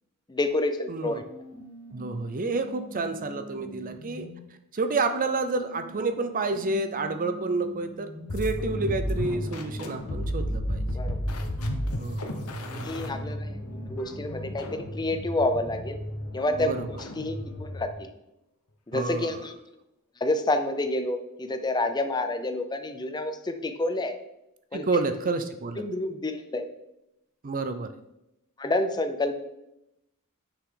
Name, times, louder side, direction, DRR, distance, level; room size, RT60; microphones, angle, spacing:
voice 1, 0.3-1.2 10.9-11.2 12.7-16.0 16.3-18.1 18.9-19.5 20.2-24.1 24.7-24.9 25.8-26.7 28.6-29.4, left 2 dB, 20° left, 8 dB, 0.5 m, -29 dB
voice 2, 0.9-1.2 1.9-4.3 4.7-10.8 12.0-13.1 16.6-16.9 18.9-19.4 24.7-25.8 27.4-27.9, right 3 dB, 40° right, 9 dB, 0.5 m, -29 dB
sound 1, 1.2-4.4 5.2-12.1 12.7-16.1, equal, 15° right, 2.3 m, -44 dB
sound 2, 8.3-18.0, equal, 85° left, 1.1 m, -33 dB
10.0 x 5.9 x 3.8 m, 0.87 s
head